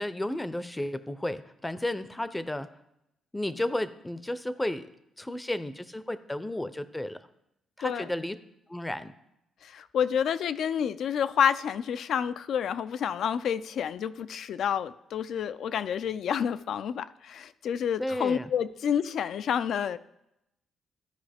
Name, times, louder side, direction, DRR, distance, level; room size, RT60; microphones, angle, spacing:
voice 1, 0.0-2.7 3.3-4.9 5.2-7.2 7.8-8.4 8.7-9.1 18.0-18.5, left 1 dB, 10° left, 0.5 m, -33 dB
voice 2, 9.6-20.0, left 8 dB, 70° left, 0.3 m, -29 dB
13.0 x 4.9 x 3.5 m
cardioid pair, 90°, 0 cm